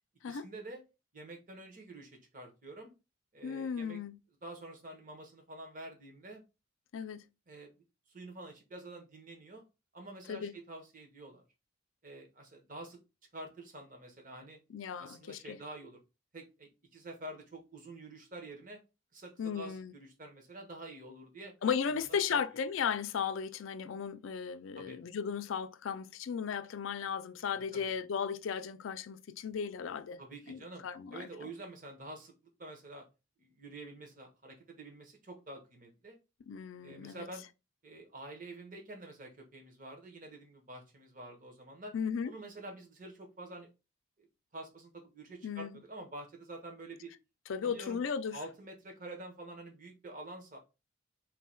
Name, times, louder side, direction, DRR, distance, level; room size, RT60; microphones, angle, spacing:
voice 1, 0.3-0.8 1.1-2.9 3.3-4.0 4.4-6.4 7.5-7.7 8.1-9.6 9.9-11.5 12.0-13.0 13.3-14.6 15.0-16.0 16.3-18.8 19.1-21.6 21.9-22.0 22.3-22.4 24.8-25.0 27.5-27.9 30.2-30.9 31.1-33.1 33.4-36.2 36.8-37.4 37.8-41.9 42.2-43.7 44.2-44.3 44.5-47.1 47.6-48.0 48.3-50.6, right 2 dB, 40° right, 1.0 m, -48 dB
voice 2, 3.4-4.2 6.9-7.2 10.3-10.5 14.7-15.6 19.4-19.9 21.6-30.2 30.5-31.5 36.5-37.3 41.9-42.3 45.4-45.8 47.5-48.4, left 7 dB, 80° left, 0.4 m, -36 dB
3.8 x 2.3 x 4.3 m
head